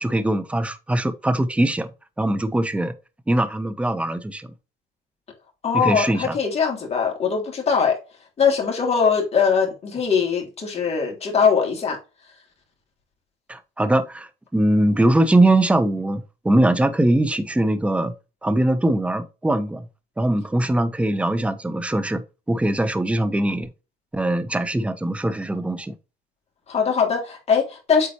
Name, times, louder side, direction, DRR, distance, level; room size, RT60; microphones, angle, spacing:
voice 1, 0.0-2.9 3.3-4.5 5.7-6.3 13.5-18.1 18.4-19.8 20.2-23.7 24.1-25.9, right 1 dB, 5° right, 0.9 m, -21 dB
voice 2, 5.6-8.0 8.4-12.0 26.7-28.1, left 6 dB, 40° left, 3.5 m, -21 dB
8.4 x 4.2 x 3.1 m
cardioid pair, 110°, 17 cm